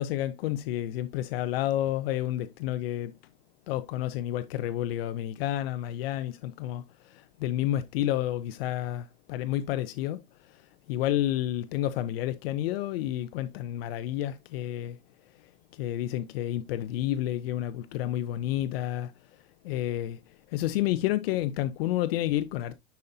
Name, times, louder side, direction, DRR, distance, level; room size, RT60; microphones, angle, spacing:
voice 1, 0.0-3.1 3.7-15.0 15.7-19.1 19.6-22.8, left 13 dB, 60° left, 0.7 m, -30 dB
10.5 x 5.5 x 2.7 m
supercardioid pair, 145°, 33 cm